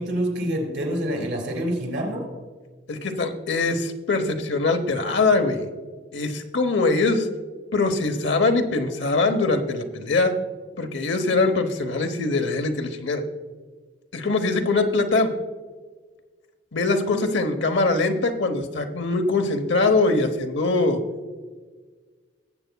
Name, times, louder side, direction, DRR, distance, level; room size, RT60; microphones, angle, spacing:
voice 1, 0.0-2.2, equal, 85° right, 1 dB, 3.4 m, -26 dB
voice 2, 2.9-5.7 6.1-7.3 7.7-10.3 10.8-13.2 14.1-15.3 16.7-21.0, left 3 dB, 85° left, 6 dB, 0.9 m, -22 dB
18.5 x 8.1 x 2.2 m, 1.4 s
head